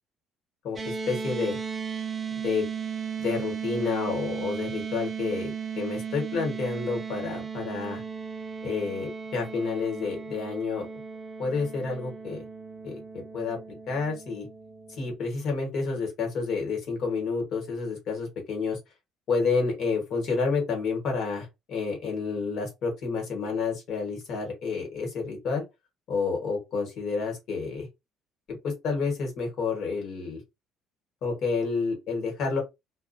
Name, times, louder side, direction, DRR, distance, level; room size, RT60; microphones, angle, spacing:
sound 1, 0.8-15.2, right 6 dB, 20° right, 0.4 m, -36 dB
voice 1, 1.1-1.6 2.4-2.6 3.2-8.0 8.6-10.9 11.4-12.4 12.8-13.6 13.9-14.5 15.0-18.8 19.3-25.6 26.1-27.9 28.5-30.4 31.2-32.6, left 4 dB, 50° left, 1.2 m, -29 dB
2.3 x 2.1 x 2.5 m
cardioid pair, 165°, 0 cm